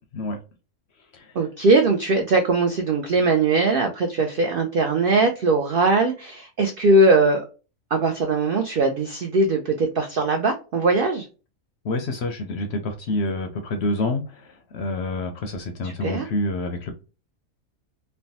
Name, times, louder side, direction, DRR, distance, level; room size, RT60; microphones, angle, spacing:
voice 1, 1.4-7.4 7.9-11.3 15.8-16.3, right 3 dB, 85° right, 5 dB, 0.4 m, -20 dB
voice 2, 11.8-16.9, left 2 dB, 65° left, 6 dB, 0.7 m, -28 dB
3.3 x 2.1 x 2.6 m, 0.33 s
omnidirectional pair, 1.5 m